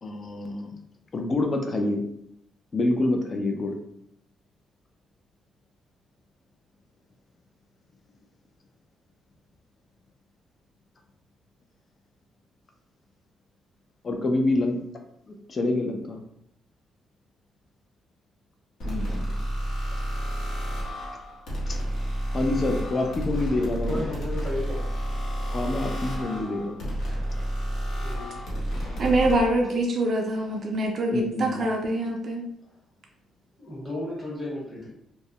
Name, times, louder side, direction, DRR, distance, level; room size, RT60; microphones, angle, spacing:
voice 1, 0.0-0.7 1.1-2.1 2.7-3.8 14.0-14.8 15.3-16.2 18.8-19.3 21.7-21.8 22.3-24.1 25.5-26.9 31.1-31.7, left 2 dB, 40° left, 3 dB, 0.4 m, -27 dB
sound 1, 18.8-29.5, right 1 dB, 70° left, 0.9 m, -30 dB
voice 2, 23.9-24.9 28.0-28.4 33.6-34.9, left 1 dB, 20° left, -5 dB, 1.1 m, -34 dB
voice 3, 29.0-32.5, right 1 dB, 50° right, 1 dB, 0.4 m, -25 dB
2.2 x 2.0 x 2.7 m, 0.74 s
cardioid pair, 80°, 0 cm